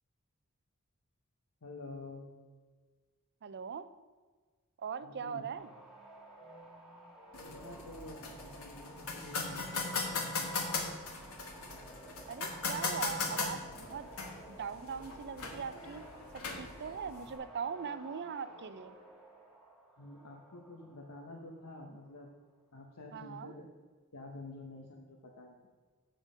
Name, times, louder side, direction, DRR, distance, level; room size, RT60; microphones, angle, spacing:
voice 1, 1.6-2.3 5.0-5.5 7.4-10.8 20.0-22.3 22.7-23.7 24.1-25.6, left 2 dB, 85° left, 0 dB, 1.0 m, -49 dB
voice 2, 3.4-3.9 4.8-5.7 12.3-14.1 14.5-16.0 16.5-18.9 23.1-23.5, right 6 dB, 50° right, 13 dB, 0.5 m, -41 dB
sound 1, 5.5-22.3, right 1 dB, ahead, 1.7 m, -55 dB
sound 2, 7.3-17.4, left 4 dB, 70° left, 1.3 m, -39 dB
7.7 x 7.4 x 5.0 m, 1.4 s
head